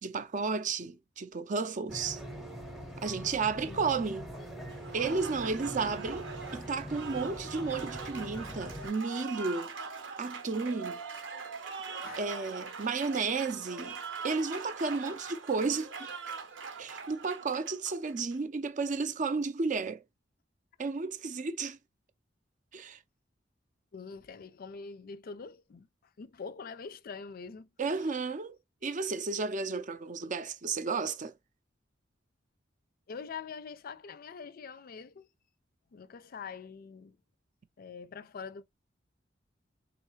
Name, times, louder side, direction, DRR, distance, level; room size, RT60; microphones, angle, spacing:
voice 1, 0.0-2.2 3.0-4.3 4.9-9.7 10.2-11.0 12.2-14.0 14.2-16.1 16.8-20.0 20.8-21.8 22.7-23.0 27.8-31.3, right 4 dB, 45° right, 0.5 m, -33 dB
sound 1, 1.9-8.9, right 1 dB, ahead, 0.7 m, -42 dB
Applause, 4.7-18.3, right 5 dB, 80° right, 0.9 m, -42 dB
voice 2, 23.9-25.9 26.2-27.7 33.1-35.3 35.9-37.2 37.8-38.6, left 5 dB, 50° left, 0.4 m, -44 dB
3.9 x 3.2 x 3.1 m
head